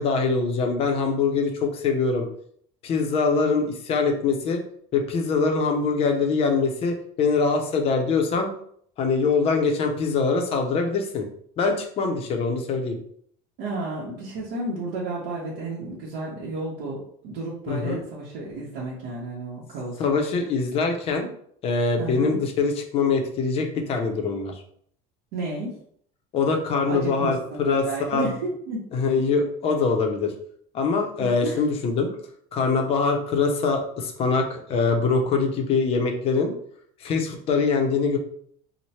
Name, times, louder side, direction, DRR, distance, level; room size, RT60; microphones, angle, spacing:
voice 1, 0.0-2.3 2.8-4.6 4.9-8.5 9.0-11.3 11.6-13.0 17.7-18.0 20.0-21.3 21.6-24.6 26.3-28.3 28.9-30.3 30.7-32.1 32.5-36.5 37.0-38.2, left 4 dB, 35° left, 3 dB, 0.5 m, -23 dB
voice 2, 13.6-20.1 22.0-22.4 25.3-25.8 26.9-28.8 31.2-31.6, right 2 dB, 70° right, -6 dB, 1.0 m, -32 dB
3.0 x 2.1 x 4.1 m, 0.63 s
cardioid pair, 175°, 17 cm